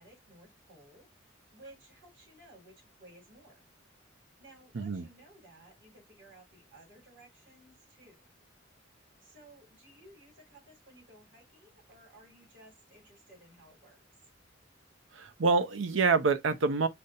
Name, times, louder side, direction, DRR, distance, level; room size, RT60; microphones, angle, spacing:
voice 1, 0.0-3.7 4.4-8.2 9.2-14.0, right 1 dB, 60° right, 2.9 m, -57 dB
voice 2, 4.7-5.1 15.1-16.9, right 4 dB, 80° right, 0.6 m, -27 dB
5.1 x 2.0 x 4.1 m
head